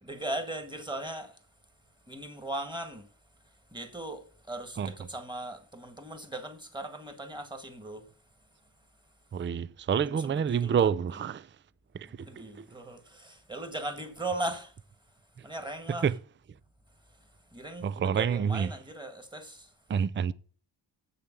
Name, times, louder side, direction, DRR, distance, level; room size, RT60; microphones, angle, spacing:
voice 1, 0.0-1.4 2.1-3.1 3.7-8.1 10.0-10.9 12.2-14.7 15.4-16.1 17.5-19.7, right 1 dB, 10° right, 1.9 m, -38 dB
voice 2, 9.3-11.5 11.9-12.7 16.0-16.1 17.8-18.7 19.9-20.3, right 7 dB, 30° right, 0.4 m, -28 dB
7.7 x 6.8 x 7.4 m
cardioid pair, 85°, 44 cm